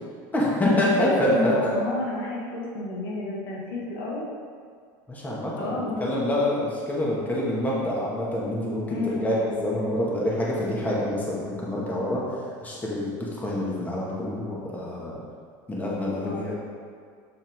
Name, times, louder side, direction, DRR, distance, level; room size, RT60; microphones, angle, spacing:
voice 1, 0.3-1.7 5.1-12.2 12.6-15.2 15.7-16.5, left 1 dB, 15° left, -5 dB, 1.9 m, -26 dB
voice 2, 1.3-4.3 5.6-6.1 8.9-9.5 16.2-16.5, left 2 dB, 85° left, -5 dB, 2.0 m, -31 dB
7.2 x 7.1 x 3.7 m, 2.1 s
supercardioid pair, 120°, 10 cm